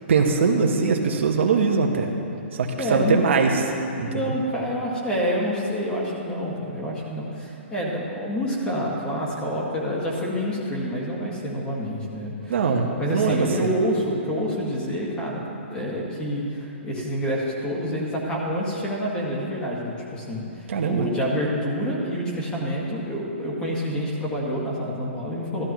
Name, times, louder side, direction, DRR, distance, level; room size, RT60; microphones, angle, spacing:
voice 1, 0.1-2.1 2.5-3.6 4.0-4.3 12.5-13.7 20.7-21.1, right 5 dB, 70° right, 2 dB, 1.2 m, -22 dB
voice 2, 2.8-3.5 4.1-12.5 13.0-25.7, equal, 15° left, -4 dB, 1.8 m, -27 dB
13.5 x 13.0 x 3.1 m, 2.8 s
hypercardioid pair, 150°, 7 cm